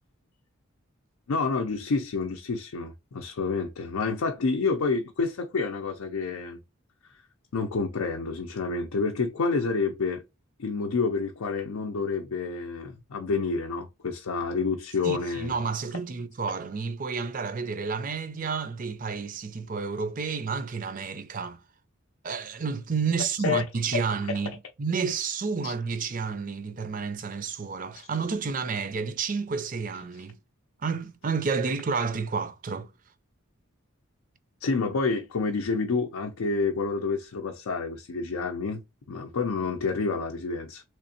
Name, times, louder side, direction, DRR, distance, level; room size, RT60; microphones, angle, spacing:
voice 1, 1.3-6.6 7.5-10.2 10.6-15.6 23.4-23.6 25.6-25.7 28.0-28.1 34.6-38.8 39.1-40.8, left 4 dB, 85° left, 0.5 m, -28 dB
voice 2, 15.0-21.6 22.2-30.4 30.8-32.9, right 5 dB, 40° right, 0.4 m, -30 dB
3.4 x 3.2 x 2.7 m
head